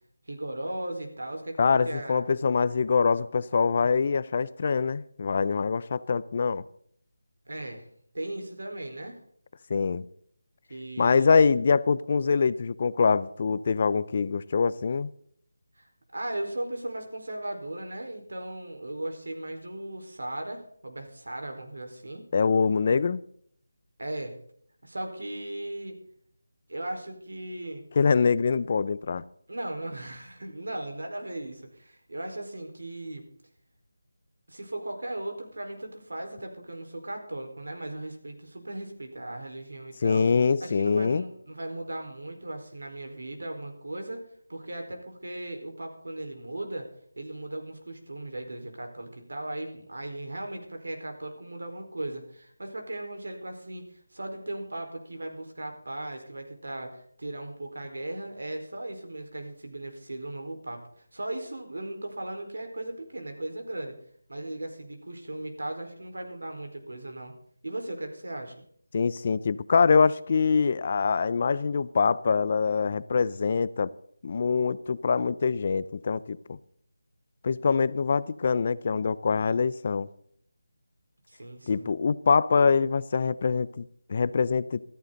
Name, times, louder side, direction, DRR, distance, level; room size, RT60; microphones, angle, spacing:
voice 1, 0.3-2.2 7.5-7.8 8.1-9.2 10.7-11.4 15.8-22.2 24.0-24.3 24.8-26.0 26.7-27.8 29.5-33.3 34.5-40.3 40.6-44.2 44.5-46.9 47.2-53.9 54.1-60.8 61.1-63.9 64.3-67.3 67.6-68.5 81.3-81.9, right 1 dB, 85° right, 4 dB, 4.6 m, -37 dB
voice 2, 1.6-6.6 9.7-10.0 11.0-15.1 22.3-23.2 28.0-29.2 40.0-41.2 68.9-73.9 74.2-76.6 77.4-80.1 81.7-84.8, left 5 dB, 30° left, 18 dB, 0.5 m, -24 dB
14.5 x 14.0 x 4.0 m, 0.64 s
figure-of-eight pair, 175°, 0 cm